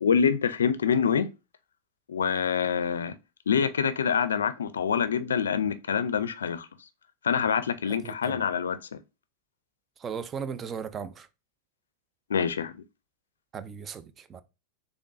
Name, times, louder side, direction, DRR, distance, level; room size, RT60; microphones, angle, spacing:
voice 1, 0.0-1.3 2.1-3.1 3.5-6.7 7.2-9.0 12.3-12.7, left 7 dB, 90° left, 0.4 m, -26 dB
voice 2, 8.0-8.4 10.0-11.3 13.5-14.4, right 6 dB, 30° right, 0.4 m, -37 dB
3.6 x 3.5 x 2.5 m
hypercardioid pair, 105°, 0 cm